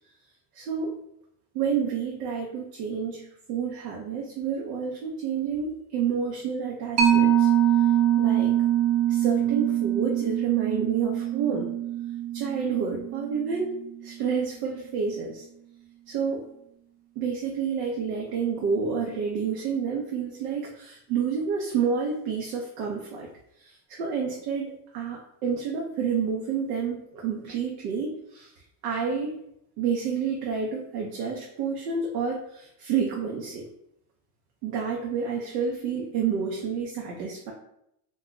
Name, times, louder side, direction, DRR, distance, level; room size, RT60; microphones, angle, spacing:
voice 1, 0.5-1.0 1.5-3.2 3.5-7.5 8.2-8.5 9.1-11.7 12.3-13.8 14.0-15.4 16.1-16.5 17.2-23.3 23.6-28.5 28.8-29.4 29.8-33.6 34.6-37.5, right 6 dB, 85° right, -1 dB, 0.7 m, -29 dB
Mallet percussion, 7.0-14.0, right 11 dB, 35° right, 0.6 m, -24 dB
2.5 x 2.3 x 3.6 m, 0.77 s
supercardioid pair, 120°, 47 cm